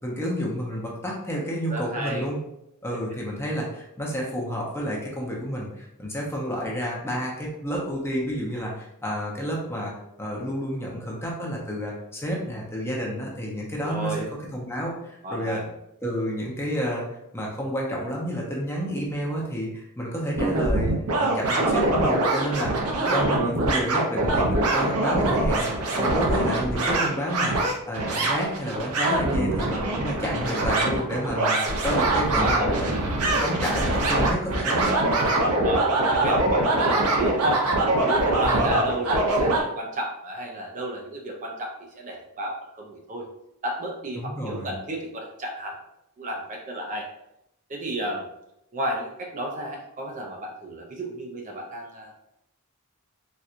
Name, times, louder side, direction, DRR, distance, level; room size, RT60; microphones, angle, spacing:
voice 1, 0.0-2.4 2.8-9.9 10.2-14.2 14.5-15.6 16.0-17.1 17.3-22.8 23.1-25.6 25.9-27.6 27.9-32.9 33.4-34.9 38.5-38.8 44.2-44.7, equal, 10° left, -3 dB, 0.7 m, -30 dB
voice 2, 1.7-2.3 2.9-3.0 13.8-14.3 15.2-15.7 23.0-23.4 32.3-33.0 34.8-34.9 35.5-37.7 38.1-43.3 43.6-45.8 46.2-47.1 47.7-48.3 48.7-52.1, right 1 dB, 35° right, 0 dB, 0.5 m, -32 dB
sound 1, 20.3-39.6, right 2 dB, 75° right, 0.7 m, -23 dB
4.2 x 2.3 x 2.5 m, 0.83 s
head